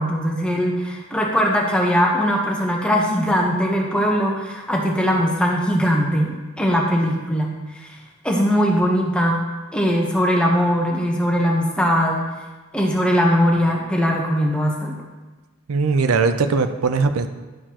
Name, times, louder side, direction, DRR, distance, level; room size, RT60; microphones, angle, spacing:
voice 1, 0.0-8.0 8.2-9.4 9.7-12.2 12.7-14.9, equal, 5° left, 0 dB, 0.9 m, -20 dB
voice 2, 15.7-17.3, right 4 dB, 85° right, 9 dB, 0.5 m, -19 dB
11.0 x 6.6 x 3.0 m, 1.3 s
head